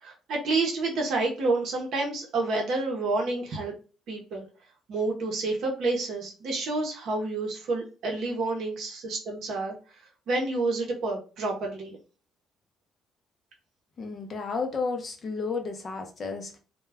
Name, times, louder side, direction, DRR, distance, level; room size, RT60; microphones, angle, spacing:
voice 1, 0.0-3.7 4.1-4.5 4.9-9.7 10.3-12.0, right 3 dB, 60° right, 0.7 m, -29 dB
voice 2, 14.0-16.6, left 4 dB, 35° left, 0.5 m, -32 dB
2.2 x 2.1 x 3.4 m
cardioid pair, 150°, 0 cm